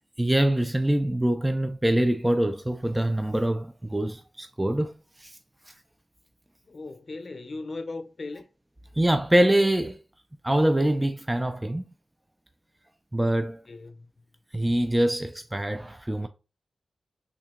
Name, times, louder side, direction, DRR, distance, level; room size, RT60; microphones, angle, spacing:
voice 1, 0.2-5.4 5.7-5.8 8.9-10.0 10.4-11.8 13.1-13.6 14.5-16.3, right 1 dB, 15° right, 0.3 m, -24 dB
voice 2, 6.6-8.4 13.7-14.1, left 3 dB, 50° left, 0.6 m, -38 dB
3.6 x 2.7 x 3.6 m
cardioid pair, 45°, 0 cm